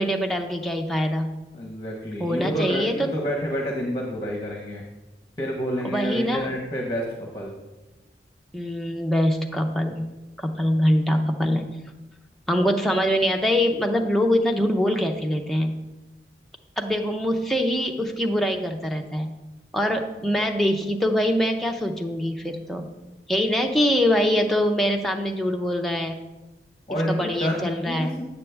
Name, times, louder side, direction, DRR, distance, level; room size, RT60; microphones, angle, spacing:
voice 1, 0.0-1.3 2.2-2.9 5.8-6.5 8.5-10.1 10.4-11.7 12.5-15.7 16.8-19.3 19.7-22.8 23.3-26.2 27.1-28.2, equal, ahead, 1 dB, 0.5 m, -23 dB
voice 2, 1.5-4.9 5.4-7.5 26.9-28.2, equal, 25° left, -1 dB, 1.0 m, -28 dB
8.2 x 6.9 x 3.4 m, 1.1 s
head